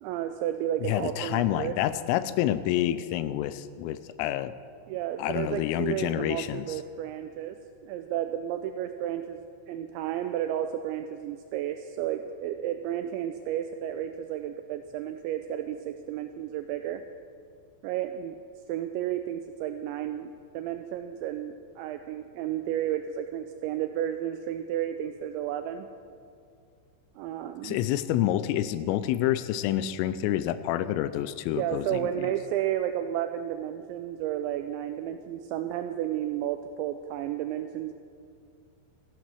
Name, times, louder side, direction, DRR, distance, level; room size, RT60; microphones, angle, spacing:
voice 1, 0.0-1.8 4.9-7.6 7.8-17.0 17.8-18.4 18.7-25.9 27.2-27.8 31.5-37.9, right 11 dB, 85° right, 8 dB, 2.6 m, -32 dB
voice 2, 0.8-4.5 5.2-6.8 27.6-32.3, left 12 dB, 90° left, 14 dB, 3.2 m, -28 dB
14.5 x 11.5 x 6.3 m, 2.3 s
omnidirectional pair, 5.7 m